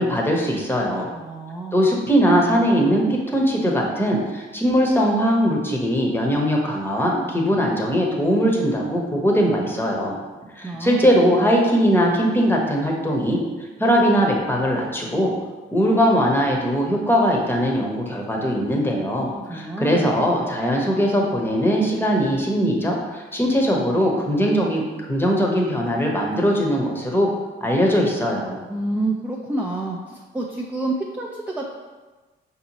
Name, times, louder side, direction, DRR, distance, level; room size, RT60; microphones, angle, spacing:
voice 1, 0.0-1.1 1.7-10.1 10.6-13.4 13.8-15.3 15.7-24.8 25.1-27.3 27.6-28.6, equal, 10° left, -1 dB, 0.9 m, -20 dB
voice 2, 1.1-1.8 10.6-11.1 19.2-20.1 28.7-31.7, right 2 dB, 10° right, -1 dB, 0.4 m, -28 dB
5.0 x 2.7 x 2.9 m, 1.2 s
cardioid pair, 90°, 20 cm